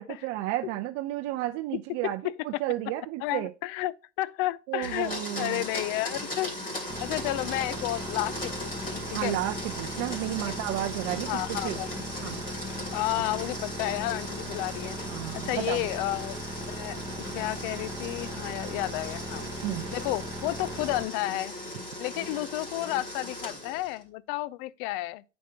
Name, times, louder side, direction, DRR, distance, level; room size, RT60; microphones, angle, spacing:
voice 1, 0.0-3.5 4.7-5.6 9.1-11.8 12.2-12.4 15.1-15.9 19.6-19.9, right 15 dB, 40° right, 0.6 m, -32 dB
voice 2, 3.2-6.7 7.0-9.4 11.3-11.9 12.9-15.0 15.3-16.4 16.7-19.5 19.9-21.5 22.0-25.2, left 17 dB, 50° left, 0.5 m, -32 dB
Domestic sounds home sounds, 4.8-24.0, left 1 dB, 25° left, 3.2 m, -38 dB
sound 1, 6.9-21.0, right 1 dB, 10° right, 1.1 m, -39 dB
9.2 x 5.3 x 2.8 m
hypercardioid pair, 110°, 35 cm